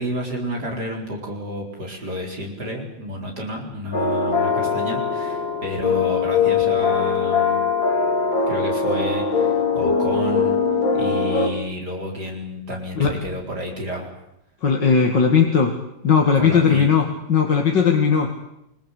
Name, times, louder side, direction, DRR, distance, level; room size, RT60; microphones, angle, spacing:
voice 1, 0.0-7.7 8.5-10.6 10.9-14.1 16.3-16.9, equal, 60° right, 0 dB, 5.2 m, -30 dB
sound 1, 3.9-11.5, left 5 dB, 90° left, 4.0 m, -21 dB
voice 2, 14.6-15.8 16.0-18.4, left 6 dB, 70° left, 3 dB, 2.7 m, -18 dB
28.0 x 22.5 x 8.3 m, 0.82 s
omnidirectional pair, 2.0 m